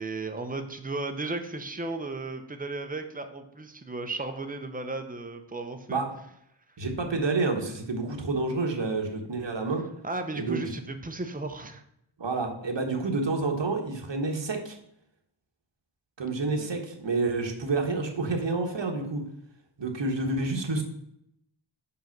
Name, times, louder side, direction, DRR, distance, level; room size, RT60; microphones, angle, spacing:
voice 1, 0.0-6.0 10.0-11.8 16.6-16.7, right 2 dB, 20° right, 6 dB, 0.8 m, -35 dB
voice 2, 6.8-9.8 10.3-10.7 12.2-14.8 16.2-19.2 19.8-20.8, right 3 dB, 70° right, 2 dB, 1.5 m, -29 dB
5.6 x 5.3 x 5.9 m, 0.77 s
wide cardioid pair, 80°, 45 cm